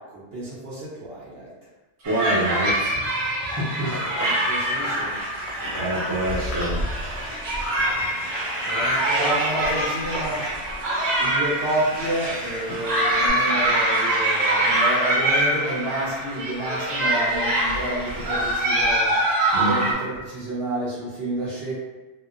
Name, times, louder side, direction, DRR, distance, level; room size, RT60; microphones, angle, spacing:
voice 1, 0.0-1.5 4.2-5.2 8.6-10.4 11.2-19.2 19.5-21.7, right 1 dB, 60° right, -8 dB, 1.2 m, -30 dB
voice 2, 2.0-2.9 3.6-3.9 5.8-6.8 19.5-19.7, right 1 dB, 25° right, -9 dB, 0.5 m, -25 dB
sound 1, 2.0-19.9, right 1 dB, 90° right, 1.0 m, -24 dB
sound 2, 2.7-13.3, left 1 dB, 55° left, 0.7 m, -34 dB
2.8 x 2.0 x 2.4 m, 1.1 s
omnidirectional pair, 1.2 m